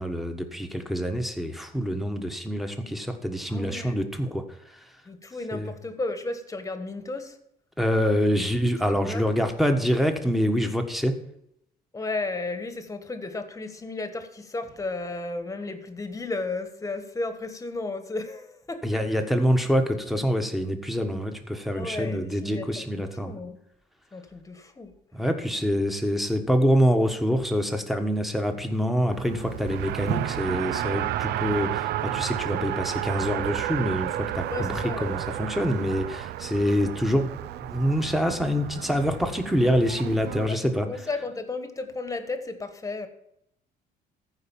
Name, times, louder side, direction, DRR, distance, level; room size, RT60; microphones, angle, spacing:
voice 1, 0.0-4.4 5.5-5.7 7.8-11.2 18.8-23.3 25.1-37.3 37.6-40.9, equal, ahead, 5 dB, 1.4 m, -26 dB
voice 2, 3.5-4.0 5.1-7.4 9.0-9.2 11.9-19.0 21.7-23.6 24.1-24.9 34.5-35.2 40.5-40.6 40.9-43.1, left 3 dB, 20° left, 9 dB, 1.4 m, -34 dB
Race car auto racing, 29.1-40.5, right 13 dB, 75° right, 0.5 m, -32 dB
14.5 x 4.9 x 7.3 m, 0.78 s
cardioid pair, 110°, 17 cm